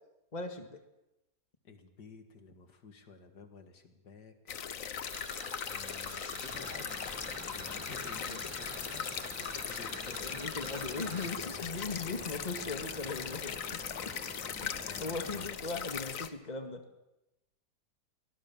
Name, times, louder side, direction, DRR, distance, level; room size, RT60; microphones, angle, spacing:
voice 1, 0.3-0.8 8.3-8.4 10.2-13.8 14.6-14.7 15.0-16.8, left 3 dB, 25° left, 6 dB, 1.9 m, -39 dB
voice 2, 1.6-4.4 5.7-10.3 14.8-15.5, left 5 dB, 75° left, 7 dB, 2.4 m, -53 dB
sound 1, 4.5-16.3, left 8 dB, 55° left, 1.3 m, -39 dB
sound 2, 5.1-11.3, right 4 dB, 90° right, 2.6 m, -48 dB
sound 3, 6.5-15.5, right 1 dB, 5° right, 1.5 m, -49 dB
24.0 x 18.5 x 7.2 m, 0.95 s
omnidirectional pair, 1.8 m